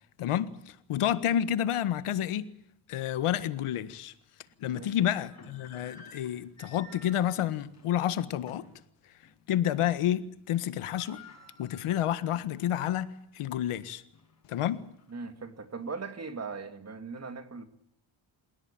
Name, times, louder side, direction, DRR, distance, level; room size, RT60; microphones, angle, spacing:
voice 1, 0.2-2.5 2.9-4.1 4.6-8.7 9.5-11.2 11.6-14.0 14.5-14.8, left 11 dB, 90° left, 1.7 m, -29 dB
sound 1, 3.9-4.0 5.0-8.8 9.2-9.4 9.7-10.2 10.4-10.5 10.7-12.7 13.1-13.2 13.8-15.1, left 3 dB, 30° left, 6.9 m, -53 dB
voice 2, 4.7-5.1 15.1-17.6, right 4 dB, 30° right, 2.5 m, -39 dB
29.0 x 17.0 x 8.9 m
cardioid pair, 145°, 49 cm